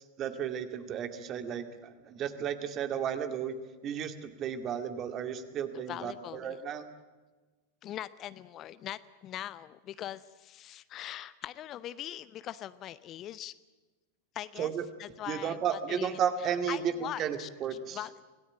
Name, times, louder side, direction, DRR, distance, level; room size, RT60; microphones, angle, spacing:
voice 1, 0.2-3.6 3.8-6.9 14.6-14.8 15.3-18.0, right 8 dB, 30° right, 8 dB, 2.1 m, -33 dB
voice 2, 5.9-6.6 7.8-13.5 14.3-14.7 15.0-16.1 16.4-18.1, left 12 dB, 30° left, 16 dB, 0.7 m, -41 dB
26.0 x 18.0 x 9.0 m, 1.3 s
figure-of-eight pair, 90°, 0 cm